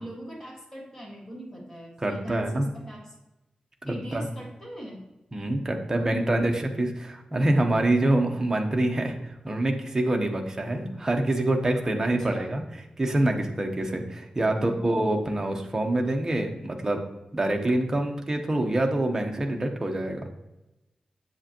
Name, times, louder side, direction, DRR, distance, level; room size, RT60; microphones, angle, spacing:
voice 1, 0.0-3.1 3.9-5.0 6.0-6.5 12.0-12.6 14.4-14.9, equal, 20° left, -2 dB, 1.8 m, -41 dB
voice 2, 2.0-2.7 3.8-4.3 5.3-17.0 17.3-20.3, right 1 dB, 20° right, 2 dB, 0.9 m, -26 dB
7.7 x 7.4 x 3.0 m, 0.96 s
wide cardioid pair, 155°, 2 cm